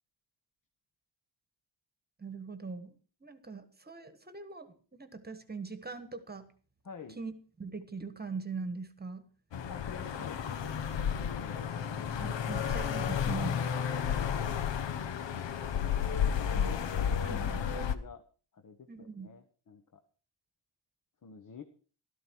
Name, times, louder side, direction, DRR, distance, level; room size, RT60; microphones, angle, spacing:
voice 1, 2.2-2.9 3.2-6.5 7.2-7.3 7.6-9.3 12.2-13.6 16.3-16.7 17.2-17.6 18.9-19.3, right 4 dB, 20° right, 11 dB, 1.4 m, -41 dB
voice 2, 6.8-7.2 9.7-11.7 16.2-18.2 18.5-20.0 21.2-21.6, left 5 dB, 45° left, 7 dB, 1.2 m, -49 dB
sound 1, 9.5-18.0, left 8 dB, 75° left, 1.1 m, -32 dB
14.5 x 13.0 x 4.6 m, 0.39 s
wide cardioid pair, 140°, 45 cm